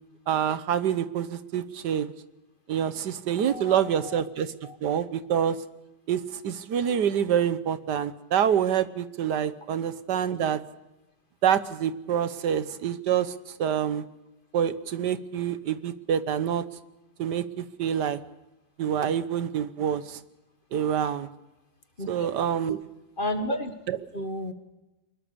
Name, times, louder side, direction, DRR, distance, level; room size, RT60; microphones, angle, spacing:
voice 1, 0.3-2.1 2.7-4.5 4.8-5.6 6.1-10.6 11.4-13.3 13.6-14.0 14.5-16.6 17.2-18.2 18.8-20.2 20.7-21.3 22.1-22.8 23.9-24.0, right 9 dB, 75° right, 14 dB, 1.5 m, -26 dB
voice 2, 3.5-4.2 4.6-4.8 22.0-22.1 23.2-23.7 24.1-24.5, left 1 dB, 30° left, 8 dB, 1.7 m, -32 dB
23.5 x 21.0 x 6.9 m, 1.0 s
omnidirectional pair, 1.9 m